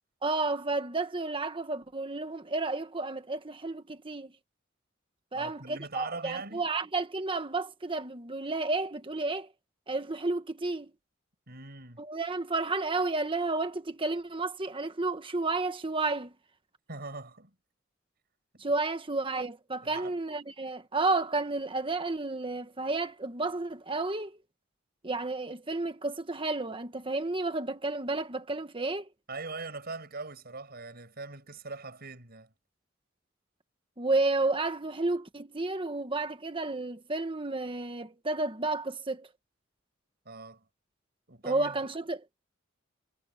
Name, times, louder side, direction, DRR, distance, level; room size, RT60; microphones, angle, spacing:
voice 1, 0.2-4.3 5.3-9.5 9.9-10.9 12.0-16.3 18.6-24.4 25.0-29.1 34.0-39.3 41.4-42.2, right 3 dB, 25° right, 1.4 m, -31 dB
voice 2, 5.3-6.7 11.5-12.0 16.9-17.5 18.5-18.7 19.8-20.2 29.3-32.5 40.3-40.7 41.3-41.8, right 3 dB, 55° right, 7.1 m, -41 dB
head